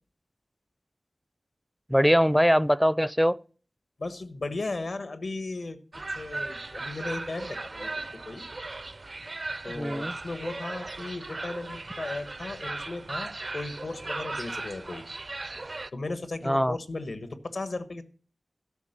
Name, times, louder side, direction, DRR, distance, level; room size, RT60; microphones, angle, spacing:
voice 1, 1.9-3.4 9.8-10.1 16.4-16.8, equal, ahead, 0.4 m, -22 dB
voice 2, 4.0-5.8 6.1-8.5 9.6-15.0 15.9-18.0, left 2 dB, 75° left, 1.3 m, -36 dB
sound 1, 5.9-15.9, right 2 dB, 55° right, 0.5 m, -37 dB
13.0 x 5.9 x 6.7 m
cardioid pair, 45°, 0 cm